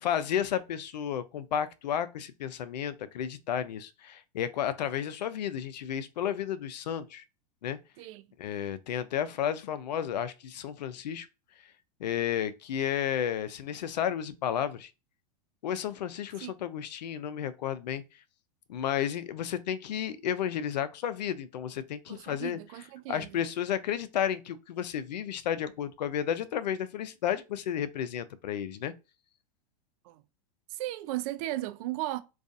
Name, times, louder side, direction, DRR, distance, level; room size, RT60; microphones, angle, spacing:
voice 1, 0.0-7.2 7.6-7.8 8.4-11.3 12.0-14.9 15.6-18.0 18.7-22.6 23.1-28.9, left 9 dB, 85° left, 0.4 m, -32 dB
voice 2, 22.1-23.4 30.0-30.2 30.7-32.2, right 16 dB, 55° right, 0.4 m, -36 dB
2.4 x 2.3 x 2.5 m
hypercardioid pair, 110°, 21 cm